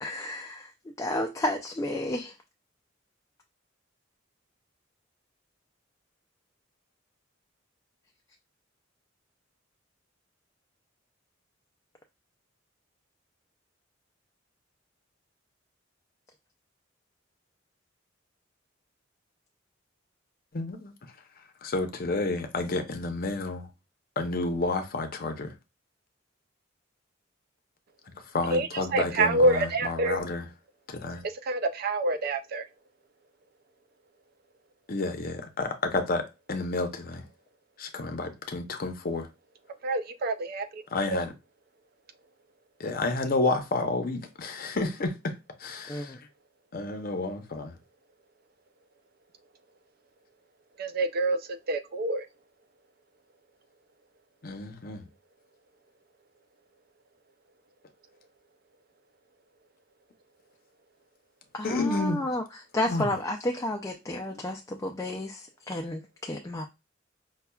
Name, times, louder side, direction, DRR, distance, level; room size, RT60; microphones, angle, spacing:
voice 1, 0.0-2.3 45.9-46.2 61.6-66.7, left 1 dB, 15° left, 0.3 m, -32 dB
voice 2, 20.5-20.9 21.6-23.7 24.2-25.5 28.3-30.4 30.9-31.2 34.9-37.2 37.8-39.3 40.9-41.3 42.8-45.3 45.6-46.1 46.7-47.7 54.4-55.0 61.6-62.2 62.9-63.1 64.3-64.4, left 3 dB, 50° left, 0.7 m, -30 dB
voice 3, 28.5-30.2 31.2-32.7 39.8-40.8 41.1-41.2 50.8-52.3, right 2 dB, 50° right, 0.4 m, -27 dB
5.5 x 2.2 x 2.3 m
head